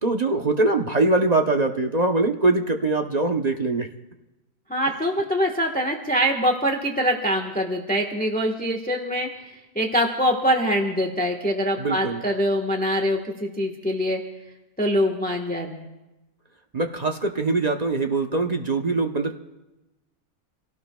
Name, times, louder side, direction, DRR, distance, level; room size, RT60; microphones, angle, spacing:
voice 1, 0.0-3.9 11.8-12.2 16.7-19.4, right 2 dB, 35° right, 4 dB, 0.7 m, -22 dB
voice 2, 4.7-9.3 9.7-14.2 14.8-15.9, equal, 5° left, 2 dB, 1.1 m, -24 dB
28.5 x 17.5 x 2.3 m, 1.0 s
omnidirectional pair, 1.8 m